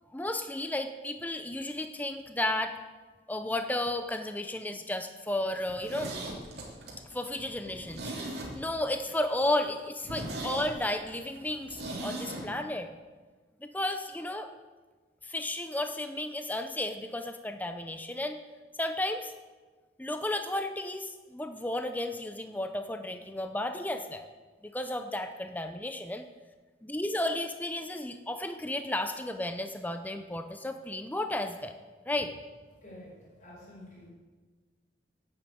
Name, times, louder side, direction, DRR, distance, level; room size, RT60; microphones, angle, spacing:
voice 1, 0.1-2.8 3.3-6.1 7.1-8.1 8.5-12.9 13.6-14.5 15.2-18.4 18.8-19.3 20.0-24.3 24.6-26.3 26.8-31.7 32.1-32.3, left 1 dB, 10° left, 7 dB, 0.6 m, -33 dB
Zipper (clothing), 5.6-8.9 9.2-9.3 9.7-9.8 10.0-12.4 12.7-12.8, right 1 dB, 60° right, 3.1 m, -39 dB
voice 2, 32.8-34.1, left 1 dB, 40° left, -5 dB, 4.9 m, -49 dB
11.5 x 8.8 x 8.4 m, 1.3 s
head